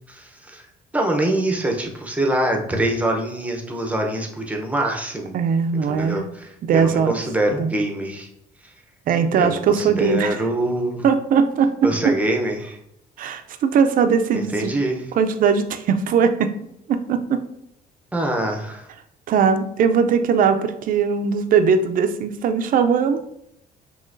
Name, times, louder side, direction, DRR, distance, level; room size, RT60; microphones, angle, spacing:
voice 1, 0.1-0.6 0.9-5.3 5.9-8.3 9.3-11.0 11.8-12.8 14.3-15.1 18.1-18.9, right 1 dB, 10° right, 2 dB, 0.8 m, -24 dB
voice 2, 5.3-6.2 6.6-7.2 7.6-7.7 9.1-10.4 11.0-12.1 13.2-14.7 15.1-16.5 16.9-17.4 19.3-23.2, right 6 dB, 55° right, 8 dB, 0.5 m, -19 dB
5.6 x 2.9 x 2.6 m, 0.77 s
cardioid pair, 110°, 17 cm